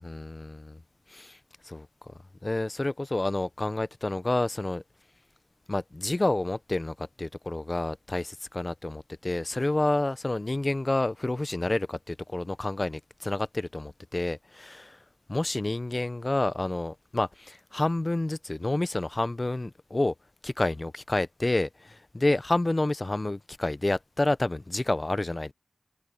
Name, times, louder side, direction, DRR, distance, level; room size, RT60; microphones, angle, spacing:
voice 1, 0.0-0.8 1.1-1.4 1.6-2.1 2.4-4.8 5.7-15.0 15.3-20.1 20.4-25.5, left 2 dB, 30° left, 0.7 m, -29 dB
wide cardioid pair, 85°, 0 cm